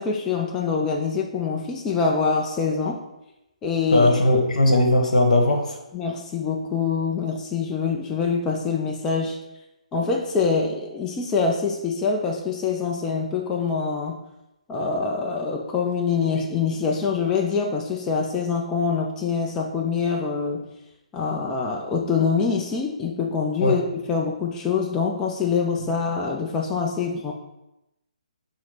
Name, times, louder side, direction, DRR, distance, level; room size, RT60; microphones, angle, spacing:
voice 1, 0.0-3.0 3.6-4.1 5.9-9.4 9.9-14.1 14.7-20.6 21.1-27.3, left 5 dB, 15° left, 0 dB, 0.3 m, -25 dB
voice 2, 3.9-5.8 23.6-23.8, left 1 dB, 70° left, 3 dB, 1.0 m, -18 dB
5.6 x 2.0 x 4.7 m, 0.90 s
hypercardioid pair, 150°, 4 cm